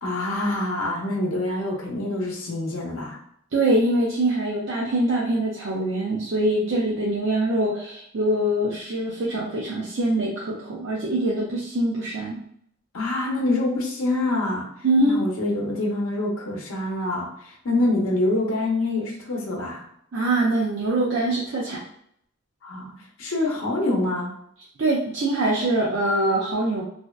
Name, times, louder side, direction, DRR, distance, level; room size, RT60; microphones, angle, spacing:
voice 1, 0.0-3.2 12.9-19.8 22.6-22.9 23.2-24.3, left 2 dB, 80° left, -1 dB, 0.6 m, -26 dB
voice 2, 3.5-12.4 14.8-15.2 20.1-21.8 24.8-26.8, right 1 dB, 60° right, -5 dB, 0.4 m, -23 dB
2.6 x 2.1 x 2.2 m, 0.67 s
head